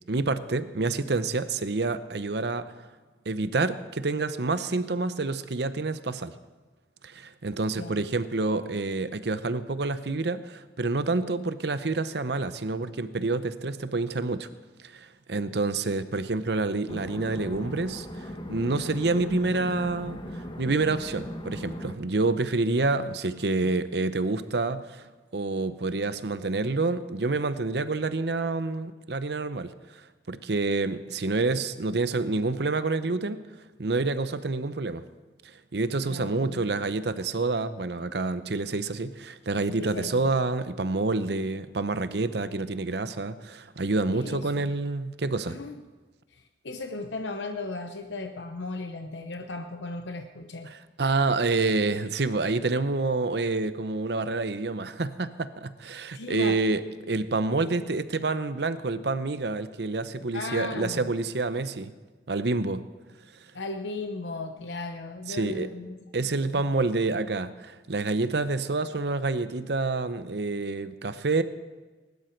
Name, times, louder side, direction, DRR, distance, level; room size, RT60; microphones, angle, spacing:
voice 1, 0.1-2.6 3.3-6.3 7.0-14.5 14.8-25.0 25.3-33.5 33.8-35.0 35.4-45.6 50.7-61.9 62.3-62.8 65.3-65.7 66.1-71.4, right 3 dB, 65° right, 12 dB, 0.8 m, -28 dB
sound 1, 16.9-21.9, equal, 25° left, 1.1 m, -38 dB
voice 2, 36.1-36.6 39.8-40.3 44.1-44.7 45.5-45.8 46.3-50.7 56.1-56.6 57.5-57.6 60.3-61.1 63.5-66.7, left 3 dB, 80° left, 5 dB, 0.8 m, -36 dB
21.0 x 12.0 x 4.5 m, 1.3 s
head